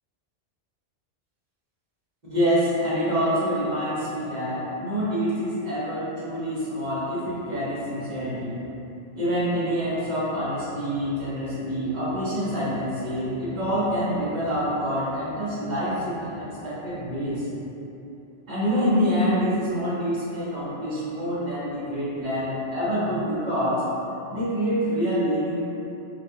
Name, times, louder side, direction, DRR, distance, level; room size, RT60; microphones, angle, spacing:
voice 1, 2.3-8.7 9.1-17.5 18.5-23.8 24.3-25.6, equal, 45° right, -9 dB, 0.8 m, -26 dB
2.3 x 2.2 x 2.7 m, 2.9 s
omnidirectional pair, 1.1 m